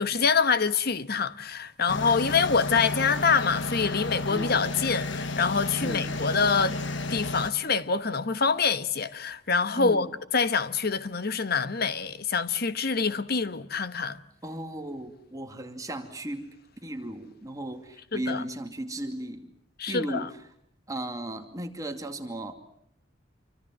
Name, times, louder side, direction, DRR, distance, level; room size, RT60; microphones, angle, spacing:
voice 1, 0.0-6.8 7.1-10.1 10.3-14.2 18.1-18.4 19.8-20.3, left 5 dB, 55° left, 1.1 m, -26 dB
sound 1, 1.9-7.5, left 2 dB, 70° left, 1.4 m, -32 dB
voice 2, 9.8-10.1 14.4-16.5 16.8-19.5 19.9-20.4 20.9-22.5, right 1 dB, 20° right, 2.5 m, -36 dB
28.0 x 24.5 x 7.6 m
head